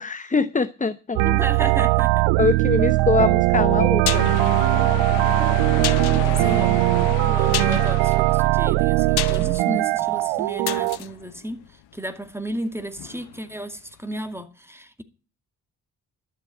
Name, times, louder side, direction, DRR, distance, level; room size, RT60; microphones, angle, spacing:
voice 1, 0.0-1.2 2.4-4.3, left 4 dB, 20° left, 0.8 m, -23 dB
voice 2, 1.2-2.3 6.1-6.9 7.2-15.0, right 1 dB, 5° right, 2.3 m, -33 dB
sound 1, 1.2-11.0, right 19 dB, 85° right, 0.6 m, -20 dB
sound 2, 3.6-12.5 12.8-12.9, left 12 dB, 60° left, 0.8 m, -34 dB
sound 3, 4.1-8.9 9.3-9.7 10.0-10.7 12.3-12.4 12.9-13.8, left 13 dB, 90° left, 1.0 m, -33 dB
12.0 x 7.5 x 8.8 m
hypercardioid pair, 40°, 43 cm